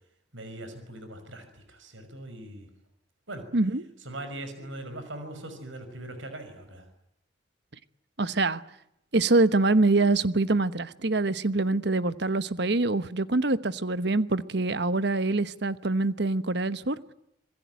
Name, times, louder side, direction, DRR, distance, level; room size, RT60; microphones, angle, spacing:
voice 1, 0.3-2.7 3.3-3.4 4.0-6.9, right 1 dB, 80° right, 5.8 m, -41 dB
voice 2, 3.5-3.8 8.2-8.6 9.1-17.0, right 2 dB, 60° right, 1.1 m, -25 dB
26.5 x 21.5 x 9.5 m
head